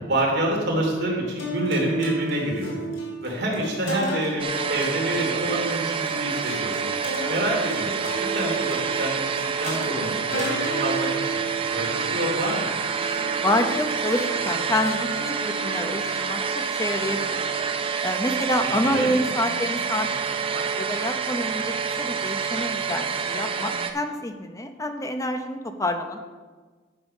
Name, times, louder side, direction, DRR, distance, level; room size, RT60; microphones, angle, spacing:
voice 1, 0.1-2.8 3.2-6.8 7.3-8.0 8.3-9.3 9.6-11.1 11.7-12.8 18.8-19.1, right 1 dB, 55° right, -1 dB, 2.7 m, -27 dB
sound 1, 1.4-17.8, right 1 dB, 80° left, 3.2 m, -34 dB
sound 2, 4.4-23.9, right 6 dB, 25° right, 0.5 m, -27 dB
voice 2, 13.4-17.4 18.0-20.2 20.5-26.2, left 1 dB, 15° left, 6 dB, 0.7 m, -27 dB
10.5 x 6.9 x 5.5 m, 1.4 s
head